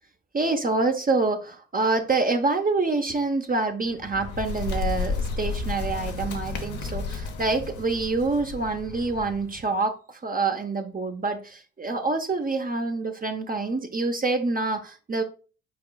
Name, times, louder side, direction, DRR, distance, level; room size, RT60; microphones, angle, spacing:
voice 1, 0.3-15.2, right 3 dB, 30° right, 0.8 m, -26 dB
Bird, 3.9-9.6, left 4 dB, 75° left, 0.8 m, -32 dB
5.9 x 3.9 x 2.3 m
hypercardioid pair, 45°, 30 cm